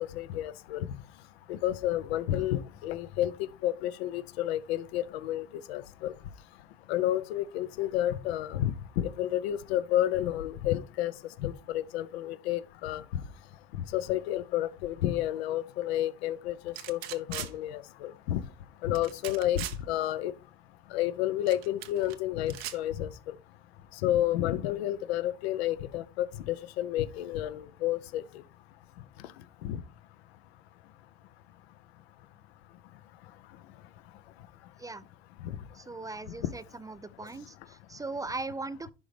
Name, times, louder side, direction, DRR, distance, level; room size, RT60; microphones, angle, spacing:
voice 1, 0.1-0.9 1.5-6.1 6.9-11.1 11.4-13.0 13.9-18.4 18.8-20.3 20.9-23.4 24.0-28.2 29.6-29.8 35.4-35.6, left 13 dB, 80° left, 0.7 m, -30 dB
sound 1, 16.8-17.5 18.9-19.8 21.5-22.2 22.5-22.8, right 13 dB, 80° right, 0.8 m, -39 dB
voice 2, 35.7-38.9, right 3 dB, 10° right, 0.3 m, -39 dB
10.5 x 3.9 x 3.2 m
hypercardioid pair, 80°, 31 cm